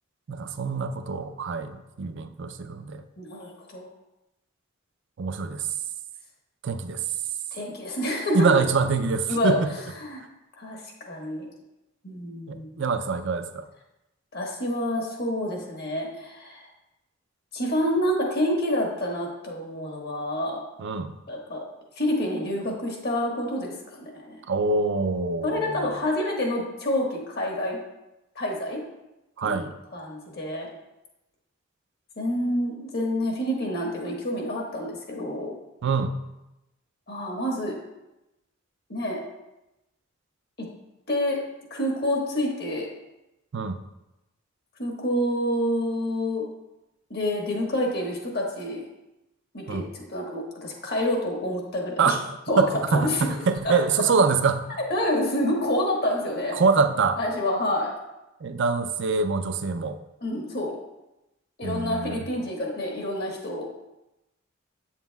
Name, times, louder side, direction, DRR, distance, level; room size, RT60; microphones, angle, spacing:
voice 1, 0.3-3.0 5.2-5.7 6.6-7.0 8.3-9.7 12.5-13.7 20.8-21.1 24.5-25.9 29.4-29.7 35.8-36.1 43.5-43.8 49.7-49.8 52.0-54.7 56.5-57.2 58.4-60.0 61.6-62.2, right 4 dB, 60° right, 9 dB, 0.5 m, -25 dB
voice 2, 3.2-3.9 7.5-8.6 9.3-9.6 10.0-10.2 10.6-11.5 12.0-12.8 14.3-16.7 17.5-20.6 21.3-21.6 22.0-24.4 25.4-27.8 28.3-28.8 29.4-29.6 29.9-30.7 32.2-35.5 37.1-37.8 38.9-39.2 40.6-40.7 41.1-41.4 41.7-42.9 44.8-46.4 47.1-48.8 49.5-52.1 52.5-52.6 52.9-53.3 53.6-53.7 54.9-56.6 57.2-57.9 60.2-60.8 61.6-63.6, left 1 dB, 55° left, 0 dB, 1.4 m, -28 dB
8.3 x 7.3 x 2.3 m, 0.95 s
head